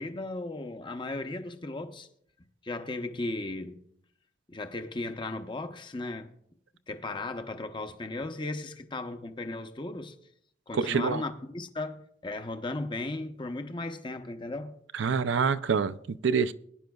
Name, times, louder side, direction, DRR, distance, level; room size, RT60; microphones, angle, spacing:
voice 1, 0.0-2.1 2.6-3.8 4.5-6.3 6.9-10.1 10.7-14.8, left 2 dB, 25° left, 0.7 m, -36 dB
voice 2, 10.7-11.2 14.9-16.5, right 5 dB, 70° right, 0.5 m, -26 dB
20.5 x 10.5 x 2.3 m
head